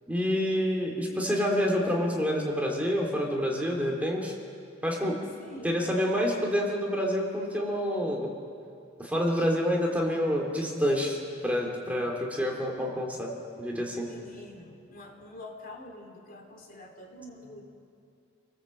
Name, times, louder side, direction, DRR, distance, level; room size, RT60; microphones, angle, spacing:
voice 1, 0.1-4.3 4.8-5.2 5.6-8.3 9.0-11.2 11.4-13.3 13.6-14.1, equal, 5° right, -1 dB, 3.0 m, -28 dB
voice 2, 5.4-5.8 6.1-6.3 14.0-17.6, left 1 dB, 45° left, 2 dB, 3.3 m, -46 dB
29.0 x 18.5 x 7.8 m, 2.6 s
head